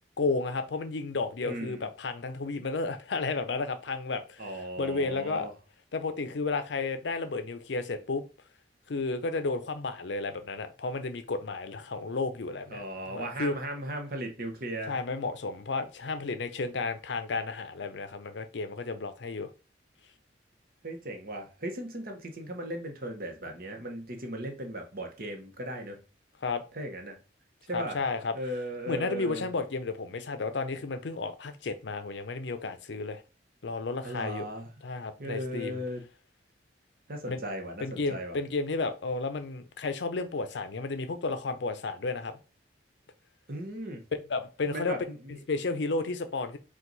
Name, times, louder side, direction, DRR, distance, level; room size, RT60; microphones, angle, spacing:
voice 1, 0.2-4.5 4.8-5.5 5.9-8.2 8.9-12.8 13.1-13.6 14.9-19.5 26.4-26.6 27.7-28.3 28.9-33.2 33.6-34.5 34.8-35.8 37.3-37.4 37.8-42.4 44.3-45.0 45.5-46.6, left 3 dB, 70° left, 0.5 m, -32 dB
voice 2, 1.4-1.9 4.4-5.5 12.7-14.9 20.8-26.0 26.7-27.2 27.7-28.0 28.3-29.5 34.0-34.7 35.2-36.0 37.1-38.4 43.5-44.0 44.7-45.4, right 1 dB, 50° right, 1.0 m, -37 dB
4.5 x 2.4 x 3.9 m
head